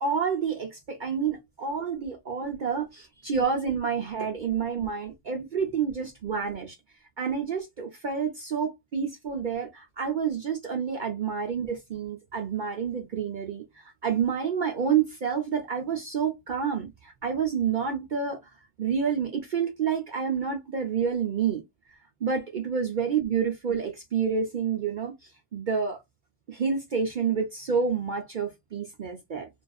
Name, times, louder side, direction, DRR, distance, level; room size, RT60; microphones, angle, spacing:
voice 1, 0.0-6.7 7.2-18.4 18.8-21.6 22.2-26.0 26.5-29.5, right 6 dB, 75° right, 0.4 m, -29 dB
2.6 x 2.3 x 2.3 m
omnidirectional pair, 1.5 m